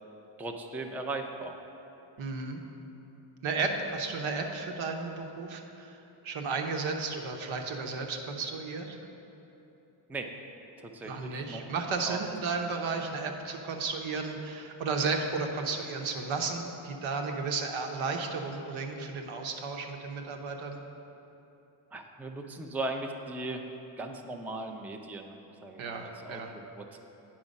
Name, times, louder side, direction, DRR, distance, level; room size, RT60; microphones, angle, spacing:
voice 1, 0.4-1.6 10.1-10.3 10.8-11.7 12.0-12.3 21.9-23.7 24.0-25.4 25.6-27.0, right 2 dB, 5° right, 3 dB, 0.5 m, -38 dB
voice 2, 2.2-2.6 3.4-6.0 6.2-9.0 11.0-20.8 25.8-26.5, right 4 dB, 75° right, 3 dB, 1.1 m, -33 dB
8.9 x 5.9 x 5.3 m, 3.0 s
cardioid pair, 95°, 49 cm